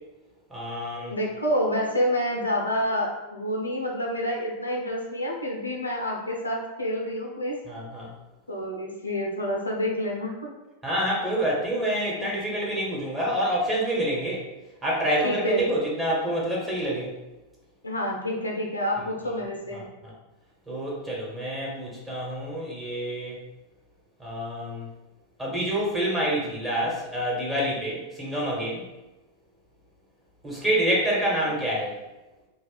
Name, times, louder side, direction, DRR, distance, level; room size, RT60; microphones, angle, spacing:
voice 1, 0.5-1.1 7.6-8.1 10.8-14.5 14.8-17.1 19.3-19.4 19.7-20.1 20.7-23.4 24.2-24.9 25.4-28.9 30.4-32.0, right 1 dB, 10° right, -5 dB, 1.2 m, -27 dB
voice 2, 1.1-7.6 8.5-10.5 12.2-12.3 15.2-15.7 17.8-19.9, equal, 80° left, 0 dB, 0.6 m, -28 dB
2.7 x 2.3 x 3.9 m, 1.1 s
figure-of-eight pair, 90°, 0 cm